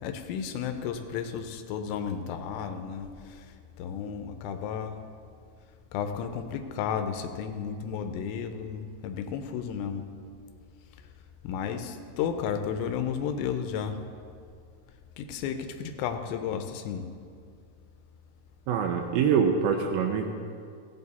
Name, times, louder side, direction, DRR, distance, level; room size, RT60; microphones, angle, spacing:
voice 1, 0.0-3.1 3.8-4.9 5.9-10.0 11.4-14.0 15.2-17.1, left 7 dB, 90° left, 7 dB, 2.9 m, -33 dB
voice 2, 18.7-20.3, right 7 dB, 85° right, 2 dB, 2.1 m, -24 dB
16.0 x 7.9 x 4.1 m, 2.2 s
omnidirectional pair, 4.9 m